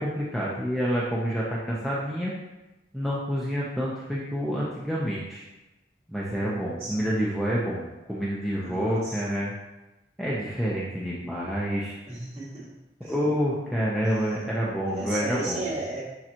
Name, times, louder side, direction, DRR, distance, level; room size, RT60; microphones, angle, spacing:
voice 1, 0.0-2.3 2.9-5.4 6.1-9.5 10.2-11.9 13.0-15.7, equal, ahead, -7 dB, 0.8 m, -28 dB
voice 2, 6.4-6.9 8.6-9.2 12.1-12.7 13.0-13.2 14.0-14.4 14.9-16.0, right 2 dB, 35° right, -6 dB, 2.2 m, -35 dB
10.5 x 3.8 x 3.0 m, 1.0 s
head